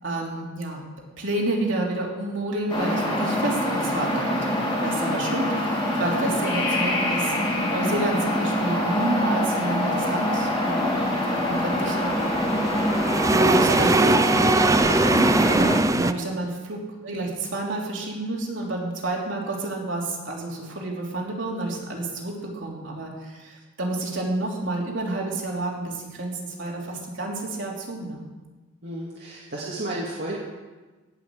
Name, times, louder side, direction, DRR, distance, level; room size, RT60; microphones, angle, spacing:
voice 1, 0.0-0.8 1.2-4.6 4.8-7.3 7.7-12.6 12.9-13.0 13.3-14.1 15.4-28.2, right 2 dB, 70° right, -2 dB, 3.1 m, -30 dB
sound 1, 2.7-15.8, left 1 dB, 25° left, 3.0 m, -25 dB
sound 2, 9.2-16.1, right 2 dB, 15° right, 0.4 m, -22 dB
voice 2, 13.6-15.0 16.1-16.4 28.8-30.4, right 1 dB, 55° right, -5 dB, 2.0 m, -32 dB
18.0 x 6.0 x 7.5 m, 1.3 s
head